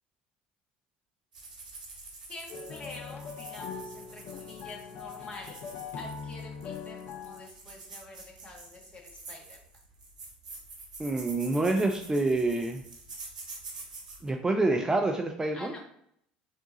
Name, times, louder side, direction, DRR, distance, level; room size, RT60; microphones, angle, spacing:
sound 1, 1.3-14.3, right 3 dB, 90° right, 0.8 m, -47 dB
voice 1, 2.3-5.6 6.0-9.6 15.5-15.8, left 2 dB, 25° left, -1 dB, 1.5 m, -47 dB
sound 2, 2.5-7.5, left 6 dB, 50° left, 0.5 m, -41 dB
voice 2, 11.0-12.8 14.2-15.7, right 2 dB, 15° right, 3 dB, 0.4 m, -27 dB
3.5 x 2.6 x 4.0 m, 0.70 s
hypercardioid pair, 70°, 4 cm